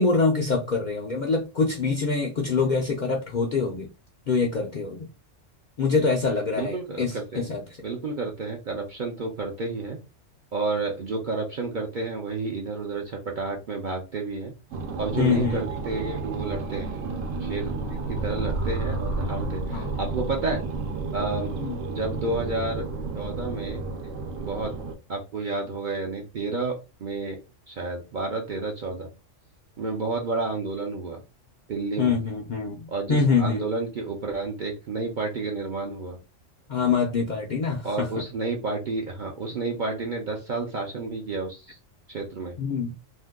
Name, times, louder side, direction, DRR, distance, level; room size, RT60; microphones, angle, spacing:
voice 1, 0.0-3.9 4.3-5.1 5.8-7.6 15.2-15.6 19.7-19.9 21.6-21.8 32.0-33.6 36.7-38.1 42.6-42.9, left 4 dB, 60° left, 0.5 m, -25 dB
voice 2, 6.6-7.5 7.8-10.0 10.5-14.5 15.0-17.0 17.4-17.7 18.1-20.6 21.1-21.5 21.9-22.9 23.1-23.8 24.4-24.7 25.1-27.4 27.7-29.1 29.8-31.2 31.7-32.2 32.9-36.2 37.8-41.8 42.1-42.5, right 3 dB, 55° right, 0.6 m, -30 dB
sound 1, 14.7-24.9, right 3 dB, 75° right, 0.9 m, -31 dB
2.6 x 2.2 x 3.5 m
omnidirectional pair, 1.3 m